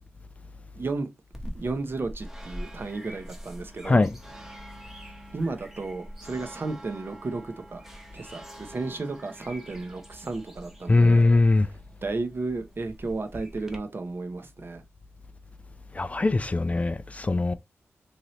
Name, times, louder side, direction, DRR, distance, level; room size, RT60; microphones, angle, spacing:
voice 1, 0.7-1.1 1.5-4.0 5.3-7.9 8.1-11.3 12.0-14.8, right 3 dB, 50° right, 0.7 m, -33 dB
sound 1, 1.3-13.8, equal, 5° right, 0.9 m, -44 dB
voice 2, 3.8-4.2 10.9-11.7 15.9-17.5, left 2 dB, 30° left, 0.3 m, -21 dB
2.8 x 2.6 x 3.1 m
cardioid pair, 55°, 5 cm